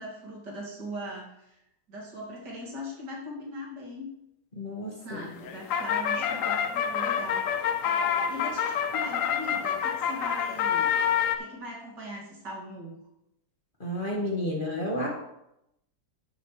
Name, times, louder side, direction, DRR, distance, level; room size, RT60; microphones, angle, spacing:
voice 1, 0.0-1.6 1.9-4.1 5.0-7.7 8.3-10.9 11.4-13.0, equal, 80° right, -3 dB, 2.8 m, -40 dB
voice 2, 4.5-5.3 13.8-15.1, left 1 dB, 30° left, -2 dB, 1.8 m, -31 dB
sound 1, 5.2-11.4, left 8 dB, 65° left, 0.9 m, -27 dB
12.0 x 7.0 x 3.2 m, 0.83 s
omnidirectional pair, 1.8 m